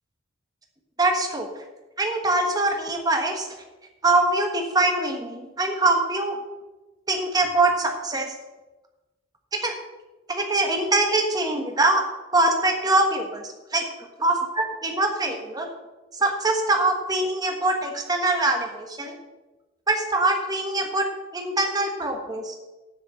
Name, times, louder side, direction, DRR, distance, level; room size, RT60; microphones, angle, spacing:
voice 1, 1.0-1.6 2.0-3.5 4.0-6.4 7.1-8.3 9.6-9.7 10.3-12.0 12.3-13.9 14.2-15.7 16.1-19.1 19.9-21.1 21.3-22.6, right 2 dB, 20° right, 3 dB, 1.4 m, -23 dB
7.9 x 6.6 x 7.8 m, 1.1 s
head